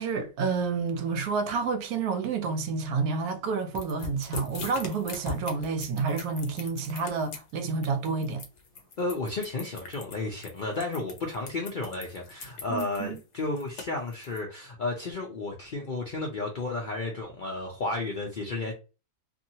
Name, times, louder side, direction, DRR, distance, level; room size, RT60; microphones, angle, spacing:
voice 1, 0.0-8.4 12.7-13.2, right 4 dB, 75° right, 1.1 m, -29 dB
sound 1, 3.8-14.4, left 4 dB, 60° left, 0.8 m, -41 dB
voice 2, 9.0-18.7, left 2 dB, 80° left, 0.4 m, -32 dB
2.8 x 2.6 x 2.7 m
omnidirectional pair, 1.6 m